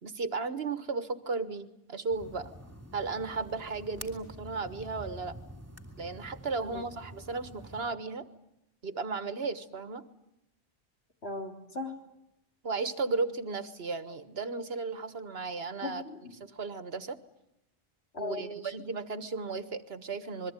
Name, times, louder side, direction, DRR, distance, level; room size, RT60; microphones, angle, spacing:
voice 1, 0.0-2.5 2.9-5.4 6.0-8.3 8.8-10.1 12.6-16.0 16.4-17.2 18.2-20.5, right 4 dB, 75° right, 12 dB, 1.6 m, -35 dB
sound 1, 2.1-7.9, equal, 15° right, 3.0 m, -48 dB
voice 2, 11.2-12.0 15.8-16.4 18.1-18.7, left 2 dB, 80° left, 3 dB, 3.6 m, -38 dB
26.5 x 22.0 x 9.1 m, 0.85 s
omnidirectional pair, 1.0 m